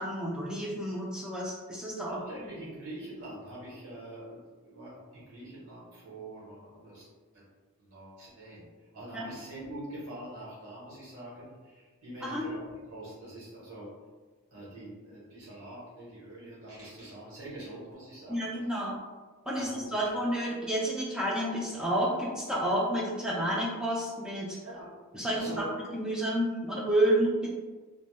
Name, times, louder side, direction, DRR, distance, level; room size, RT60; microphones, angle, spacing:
voice 1, 0.0-2.2 9.1-9.3 12.2-12.4 18.3-18.9 19.5-24.6 25.1-25.7 25.9-27.5, right 1 dB, 5° right, -5 dB, 0.3 m, -30 dB
voice 2, 2.1-7.1 7.3-7.4 7.8-8.7 8.9-13.9 14.5-18.9 19.5-20.2 24.6-24.9 25.3-25.7, right 1 dB, 65° right, -7 dB, 0.9 m, -44 dB
2.1 x 2.1 x 3.0 m, 1.4 s
head